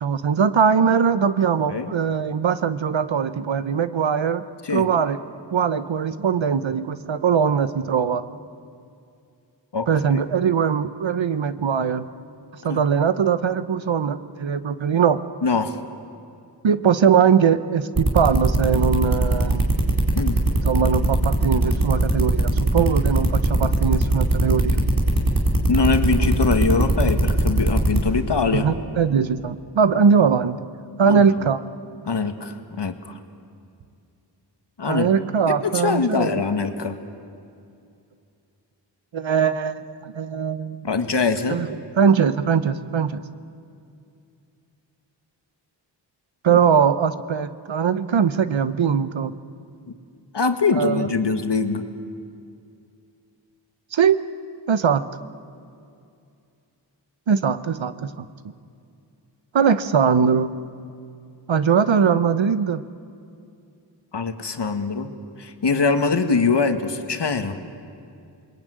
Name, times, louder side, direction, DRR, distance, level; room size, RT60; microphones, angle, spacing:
voice 1, 0.0-4.4 4.7-5.2 5.5-8.2 9.9-12.1 12.6-15.2 16.6-19.6 20.6-24.8 28.5-30.6 31.0-31.6 34.9-36.3 39.1-40.8 41.5-43.2 46.4-49.3 50.8-51.1 53.9-54.2 54.7-55.0 57.3-58.3 59.5-60.5 61.5-62.8, right 7 dB, 90° right, 13 dB, 1.1 m, -21 dB
voice 2, 15.4-15.8 20.1-20.4 25.7-28.6 31.0-31.2 32.1-33.2 34.8-35.1 35.6-36.9 40.8-41.7 50.3-51.8 64.1-65.1 65.4-67.6, left 4 dB, 65° left, 7 dB, 2.0 m, -23 dB
sound 1, 18.0-28.0, right 2 dB, 50° right, 4.3 m, -19 dB
28.0 x 21.5 x 9.4 m, 2.5 s
wide cardioid pair, 80°, 44 cm